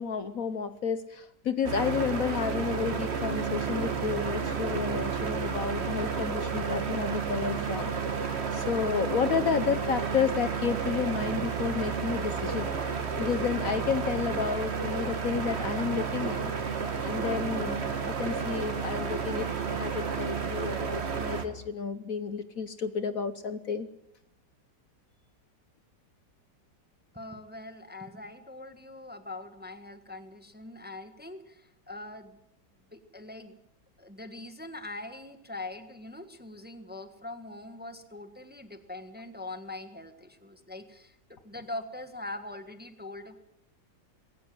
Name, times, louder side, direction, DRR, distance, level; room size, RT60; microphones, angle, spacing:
voice 1, 0.0-8.2 8.5-12.8 13.2-16.5 17.0-19.5 19.8-23.9, left 6 dB, 55° left, 12 dB, 1.3 m, -31 dB
sound 1, 1.6-21.4, right 6 dB, 40° right, 1.8 m, -31 dB
voice 2, 27.1-32.4 32.9-33.5 34.0-43.4, left 2 dB, 5° right, 9 dB, 1.3 m, -42 dB
20.5 x 17.5 x 7.7 m, 0.77 s
omnidirectional pair, 1.9 m